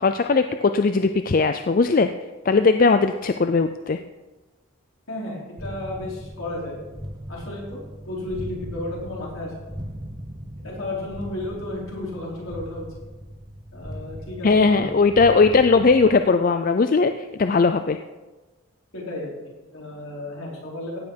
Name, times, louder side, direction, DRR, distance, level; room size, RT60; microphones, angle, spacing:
voice 1, 0.0-2.1 2.4-4.0 14.4-18.0, left 4 dB, 40° left, 9 dB, 0.4 m, -19 dB
voice 2, 5.1-6.8 7.3-9.5 10.6-12.9 13.7-14.9 18.9-21.0, left 1 dB, 70° left, -4 dB, 5.0 m, -33 dB
sound 1, 5.6-16.2, equal, 20° right, 1.2 m, -38 dB
16.0 x 9.3 x 5.2 m, 1.2 s
head